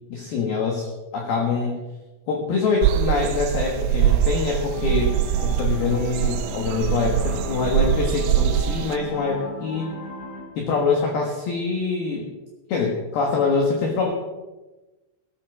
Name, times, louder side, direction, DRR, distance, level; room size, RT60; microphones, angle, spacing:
voice 1, 0.1-1.8 2.3-5.2 5.4-9.9 10.6-12.3 12.7-14.1, left 4 dB, 60° left, 0 dB, 3.0 m, -24 dB
sound 1, 2.8-9.0, right 12 dB, 85° right, 2.5 m, -23 dB
sound 2, 4.7-10.4, left 1 dB, 45° left, 5.6 m, -36 dB
17.5 x 8.5 x 6.2 m, 1.1 s
omnidirectional pair, 5.8 m